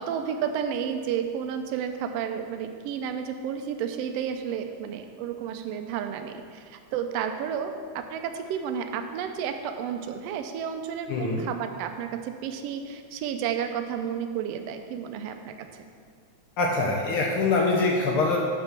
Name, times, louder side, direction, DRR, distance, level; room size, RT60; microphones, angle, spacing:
voice 1, 0.0-15.7, right 8 dB, 80° right, 6 dB, 1.5 m, -31 dB
voice 2, 11.1-11.5 16.6-18.4, left 3 dB, 75° left, -1 dB, 1.2 m, -24 dB
7.5 x 5.8 x 6.0 m, 2.2 s
omnidirectional pair, 3.3 m